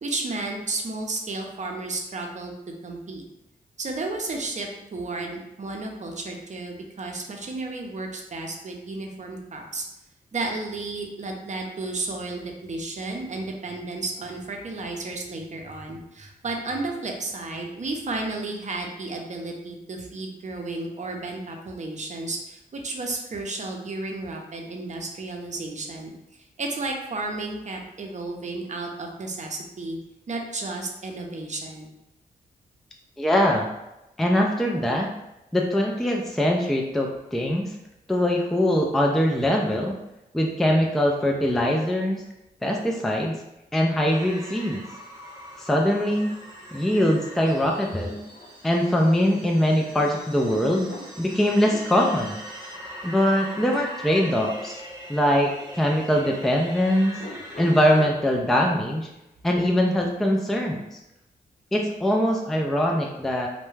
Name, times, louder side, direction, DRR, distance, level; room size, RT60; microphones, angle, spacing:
voice 1, 0.0-2.5 2.8-3.2 3.8-9.8 10.3-26.1 26.6-30.0 30.3-31.9, right 2 dB, 45° right, 2 dB, 0.6 m, -32 dB
voice 2, 33.2-33.7 34.2-35.1 35.5-37.7 38.1-40.0 40.3-42.2 42.6-43.4 43.7-44.8 45.6-46.3 46.7-48.2 48.6-50.9 51.2-52.4 53.0-54.8 55.1-57.2 57.6-59.1 59.4-61.0 61.7-63.5, equal, ahead, 0 dB, 0.4 m, -22 dB
sound 1, 44.1-58.0, equal, 25° right, 1.0 m, -42 dB
sound 2, 48.0-49.4 50.4-52.4 54.5-54.9 55.2-56.4 57.1-58.3, left 2 dB, 45° left, 0.6 m, -44 dB
2.2 x 2.1 x 3.1 m, 0.91 s
cardioid pair, 55°, 17 cm